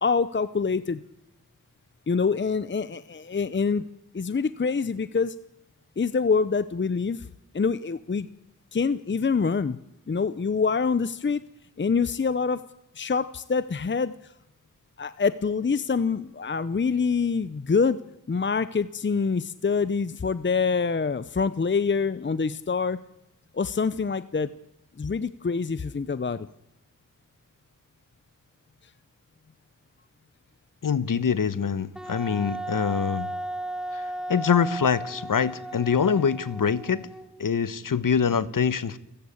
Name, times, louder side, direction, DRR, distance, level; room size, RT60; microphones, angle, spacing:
voice 1, 0.0-1.0 2.1-3.8 4.1-5.4 6.0-7.3 7.5-8.3 8.7-9.8 10.1-11.4 11.8-12.6 12.9-14.3 15.0-18.0 18.3-23.0 23.5-24.5 25.0-26.5, left 5 dB, 35° left, 0.7 m, -25 dB
voice 2, 30.8-33.3 33.9-37.0 37.4-39.0, left 6 dB, 75° left, 1.2 m, -24 dB
Wind instrument woodwind instrument, 32.0-37.4, right 1 dB, ahead, 1.4 m, -35 dB
29.0 x 14.5 x 8.6 m
wide cardioid pair, 95°, 33 cm